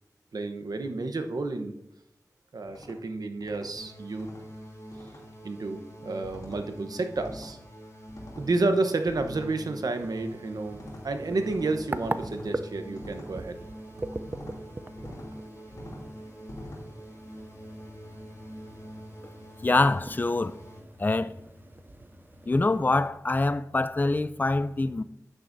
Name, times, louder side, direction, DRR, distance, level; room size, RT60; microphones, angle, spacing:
voice 1, 0.3-1.7 2.5-4.3 5.4-7.6 8.4-13.6 14.1-14.2, right 3 dB, 80° right, 0.9 m, -30 dB
sound 1, 2.7-3.0 3.4-3.7 4.1-4.4 4.9-5.2 6.2-6.6 7.2-7.5 8.1-8.5 9.1-9.5 10.7-11.0 11.4-11.8 12.2-12.5 12.9-13.3 14.2-14.6 15.0-15.3 15.7-16.0 16.5-16.8, left 1 dB, 80° left, 2.8 m, -44 dB
sound 2, 3.8-20.8, equal, 50° left, 3.1 m, -45 dB
sound 3, 9.8-23.1, right 2 dB, 30° right, 0.5 m, -41 dB
voice 2, 19.6-20.5 21.0-21.3 22.5-25.0, left 2 dB, 30° left, 0.4 m, -25 dB
10.0 x 8.9 x 2.6 m
wide cardioid pair, 60°, 6 cm